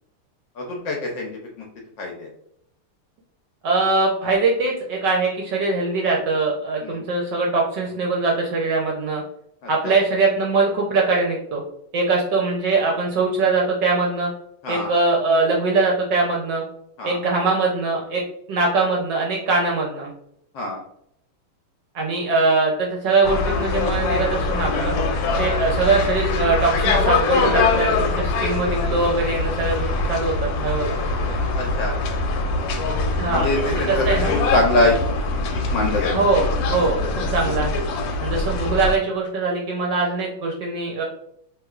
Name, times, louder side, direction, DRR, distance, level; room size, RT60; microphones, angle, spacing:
voice 1, 0.6-1.3 1.6-1.7 2.0-2.3 6.8-7.0 9.6-9.9 14.6-14.9 17.0-17.2 20.5-20.8 25.3-25.5 31.6-31.9 33.3-35.0 35.5-36.1, left 2 dB, 70° left, -1 dB, 1.1 m, -24 dB
voice 2, 3.6-9.2 9.7-11.6 11.9-14.3 14.7-16.6 17.0-18.2 18.5-20.1 21.9-24.9 25.4-31.0 33.2-34.3 36.1-37.8 38.2-41.0, right 3 dB, 70° right, -1 dB, 1.1 m, -22 dB
sound 1, 23.2-39.0, left 3 dB, 85° left, 1.5 m, -23 dB
3.3 x 2.9 x 2.4 m, 0.71 s
omnidirectional pair, 2.4 m